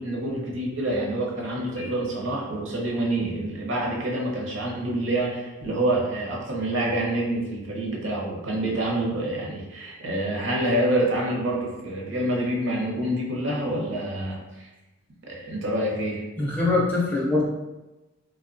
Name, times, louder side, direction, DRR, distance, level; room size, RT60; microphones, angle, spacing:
voice 1, 0.0-14.7 15.3-16.2, right 1 dB, 65° right, -2 dB, 0.6 m, -27 dB
voice 2, 16.4-17.4, left 2 dB, 10° left, -5 dB, 0.4 m, -23 dB
3.0 x 2.1 x 2.5 m, 1.0 s
head